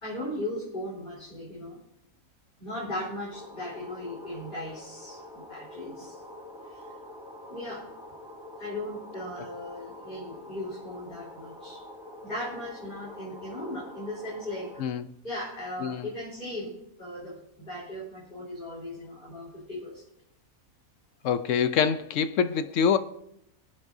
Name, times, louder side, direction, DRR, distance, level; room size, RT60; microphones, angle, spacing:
voice 1, 0.0-1.8 2.6-6.2 6.7-6.8 7.5-7.9 8.6-11.8 12.2-14.7 15.2-16.7 17.0-20.0, left 1 dB, 35° left, -7 dB, 4.0 m, -37 dB
sound 1, 3.3-14.8, left 1 dB, 5° right, 2.4 m, -46 dB
voice 2, 21.2-23.0, left 7 dB, 65° left, 12 dB, 0.9 m, -25 dB
25.0 x 8.7 x 2.7 m, 0.77 s
omnidirectional pair, 1.5 m